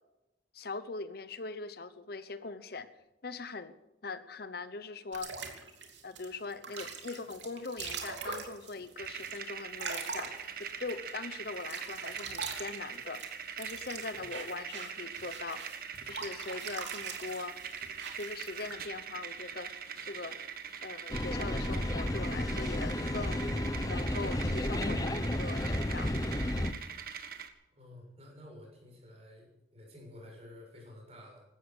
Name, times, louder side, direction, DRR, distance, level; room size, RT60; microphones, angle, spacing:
voice 1, 0.5-2.9 3.2-3.7 4.0-5.3 6.0-10.3 10.6-13.2 13.6-15.6 16.0-17.6 18.1-19.7 20.0-20.4 20.8-26.1, left 3 dB, 55° left, 12 dB, 0.9 m, -41 dB
sound 1, 5.1-11.1 11.5-18.7, right 5 dB, 70° right, 3.0 m, -42 dB
sound 2, 9.0-27.5, right 7 dB, 50° right, 1.5 m, -43 dB
sound 3, 21.1-26.7, left 1 dB, 20° left, 0.8 m, -32 dB
voice 2, 27.7-31.5, left 1 dB, 35° right, 0 dB, 7.1 m, -51 dB
16.5 x 13.0 x 6.4 m, 0.98 s
head